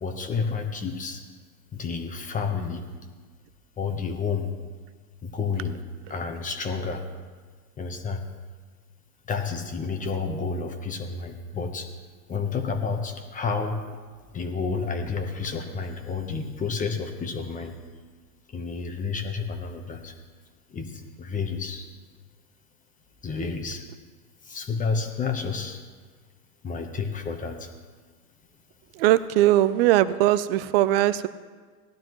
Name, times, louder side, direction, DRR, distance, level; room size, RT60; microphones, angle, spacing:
voice 1, 0.0-1.2 1.7-2.9 3.8-4.5 5.2-5.8 6.1-7.0 7.8-8.2 9.3-11.9 12.3-13.8 14.3-17.8 18.5-20.1 20.7-21.8 23.2-23.8 24.4-25.8 26.6-27.7, left 5 dB, 15° left, 4 dB, 1.1 m, -30 dB
voice 2, 28.9-31.3, right 14 dB, 40° right, 15 dB, 0.5 m, -20 dB
17.5 x 12.0 x 3.1 m, 1.5 s
hypercardioid pair, 125°, 49 cm